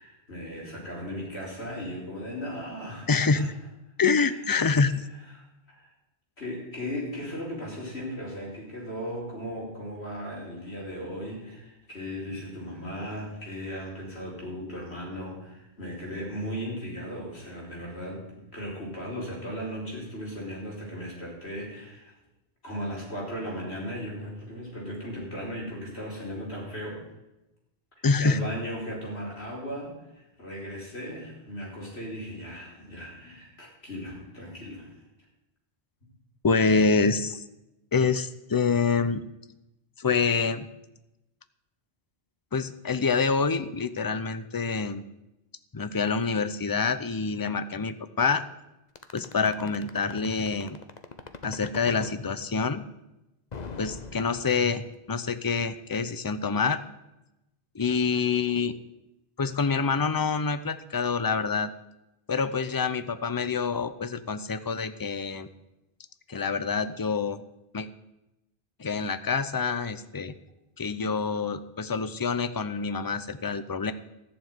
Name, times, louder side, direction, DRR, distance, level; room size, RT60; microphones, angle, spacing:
voice 1, 0.0-3.5 4.2-4.3 5.3-5.4 5.7-5.9 6.4-22.1 22.6-27.0 28.2-34.9, equal, 75° left, -3 dB, 5.2 m, -37 dB
voice 2, 3.1-3.5 4.0-5.1 28.0-28.4 36.4-37.4 37.9-39.2 40.0-40.7 42.5-45.0 45.7-48.4 49.1-50.8 51.4-52.8 53.8-54.8 55.1-56.8 57.7-58.7 59.4-61.7 62.3-65.5 66.3-67.4 67.7-67.9 68.8-70.3 70.8-73.9, left 5 dB, 25° left, 13 dB, 0.6 m, -26 dB
sound 1, 49.0-52.2 53.5-54.9, left 4 dB, 40° left, 1.0 m, -40 dB
14.5 x 7.0 x 9.3 m, 0.95 s
omnidirectional pair, 1.1 m